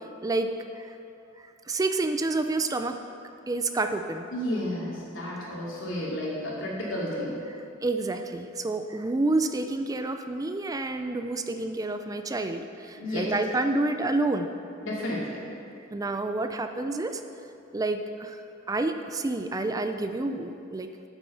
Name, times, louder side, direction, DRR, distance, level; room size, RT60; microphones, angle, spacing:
voice 1, 0.2-1.0 1.7-3.0 3.5-4.3 7.5-14.5 15.9-17.2 17.7-18.4 18.7-21.1, right 2 dB, 20° right, 8 dB, 0.4 m, -29 dB
voice 2, 4.3-7.4 13.0-13.3 14.8-15.4, left 1 dB, 85° left, -5 dB, 2.6 m, -32 dB
8.5 x 7.9 x 5.8 m, 2.6 s
head